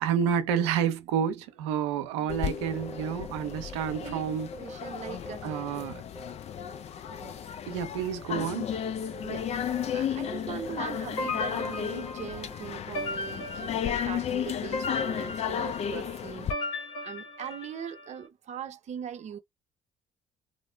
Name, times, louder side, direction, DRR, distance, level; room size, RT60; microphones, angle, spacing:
voice 1, 0.0-4.5 5.4-6.0 7.7-8.6, right 8 dB, 90° right, 0.5 m, -29 dB
sound 1, 2.3-16.5, left 9 dB, 50° left, 0.4 m, -34 dB
sound 2, 2.6-7.4 7.6-7.8 8.4-13.2, equal, 15° left, 1.4 m, -46 dB
voice 2, 4.6-5.7 7.1-7.4 9.2-19.4, right 8 dB, 55° right, 0.7 m, -41 dB
sound 3, 11.2-18.1, left 3 dB, 85° left, 0.9 m, -37 dB
2.5 x 2.1 x 3.3 m
hypercardioid pair, 60°, 14 cm